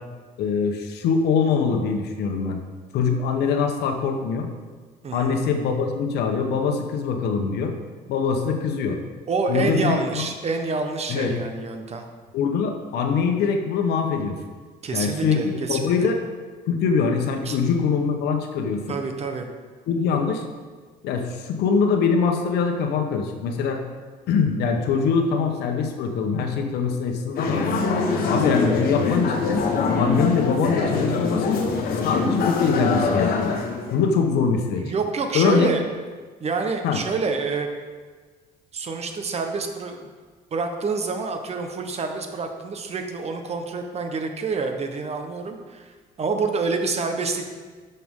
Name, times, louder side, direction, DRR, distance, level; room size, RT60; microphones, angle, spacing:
voice 1, 0.4-2.6 2.9-4.5 5.1-7.7 8.1-9.0 9.5-10.3 11.1-11.4 12.3-14.4 14.9-16.2 16.7-19.0 19.9-20.4 21.0-23.8 24.3-27.6 28.2-29.6 30.0-31.6 31.9-33.5 33.9-34.8 35.3-35.7 36.8-37.0, left 5 dB, 75° left, 4 dB, 1.1 m, -23 dB
voice 2, 5.0-5.4 9.3-12.1 14.8-15.9 17.4-17.6 18.9-19.5 34.7-35.8 36.4-37.7 38.7-40.1 40.5-47.5, right 4 dB, 40° right, 5 dB, 1.1 m, -27 dB
sound 1, 27.4-33.9, left 4 dB, 60° left, 1.3 m, -23 dB
11.0 x 6.9 x 3.8 m, 1.5 s
cardioid pair, 110°, 17 cm